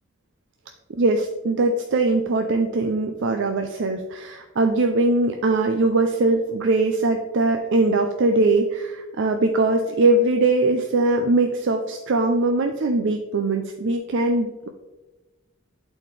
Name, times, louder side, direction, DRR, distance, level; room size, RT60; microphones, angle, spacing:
voice 1, 0.9-14.7, right 2 dB, 65° right, 5 dB, 0.5 m, -21 dB
11.5 x 4.3 x 3.3 m, 1.2 s
head